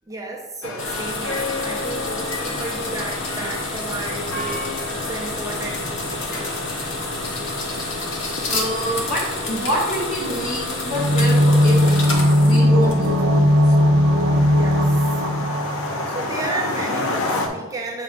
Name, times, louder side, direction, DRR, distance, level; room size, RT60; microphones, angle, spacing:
voice 1, 0.1-5.9 6.4-6.5 10.4-10.5 14.6-15.2 16.1-18.0, right 2 dB, 15° right, -1 dB, 0.5 m, -33 dB
sound 1, 0.6-17.5, left 2 dB, 75° left, 0.7 m, -32 dB
sound 2, 0.8-13.3, left 2 dB, 60° left, 1.1 m, -29 dB
voice 2, 8.5-11.8 12.4-13.6, equal, 40° left, -4 dB, 1.7 m, -26 dB
sound 3, 10.9-16.6 16.9-17.0, left 1 dB, 70° right, 0.7 m, -17 dB
7.4 x 5.2 x 2.5 m, 1.2 s
head